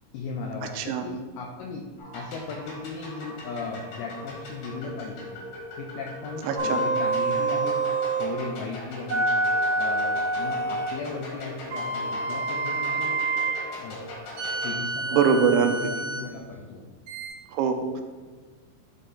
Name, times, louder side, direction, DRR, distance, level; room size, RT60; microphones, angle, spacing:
voice 1, 0.1-1.8 2.1-5.3 5.8-7.8 8.2-9.3 9.8-13.2 13.8-14.0 14.6-16.8, left 4 dB, 85° left, 0 dB, 2.2 m, -37 dB
sound 1, 2.0-14.7, left 2 dB, 65° left, 3.6 m, -40 dB
voice 2, 6.4-6.8 15.1-15.9 17.5-18.0, right 6 dB, 85° right, 6 dB, 2.9 m, -23 dB
sound 2, 6.6-8.3 9.1-11.0 11.7-13.6 14.4-16.2 17.1-17.3, right 2 dB, 65° right, 1.5 m, -27 dB
11.5 x 4.3 x 2.5 m, 1.4 s
omnidirectional pair, 5.1 m